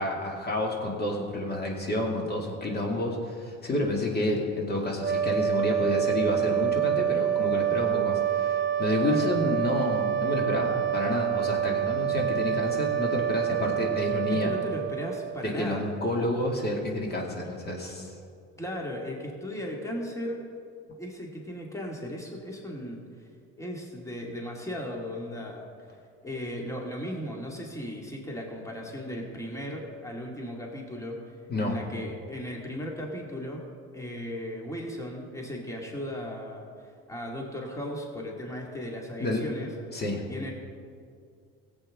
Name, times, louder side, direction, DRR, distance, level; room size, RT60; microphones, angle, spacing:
voice 1, 0.0-14.5 15.4-18.1 31.5-31.8 39.2-39.5 39.9-40.2, left 1 dB, 30° left, 0 dB, 2.3 m, -29 dB
sound 1, 5.0-15.6, right 10 dB, 30° right, 1.4 m, -27 dB
voice 2, 14.4-15.8 18.6-20.4 21.0-23.0 23.6-25.7 26.2-33.6 33.9-39.7 40.3-40.5, equal, 10° left, -1 dB, 2.2 m, -36 dB
16.5 x 8.2 x 3.7 m, 2.3 s
supercardioid pair, 80°, 31 cm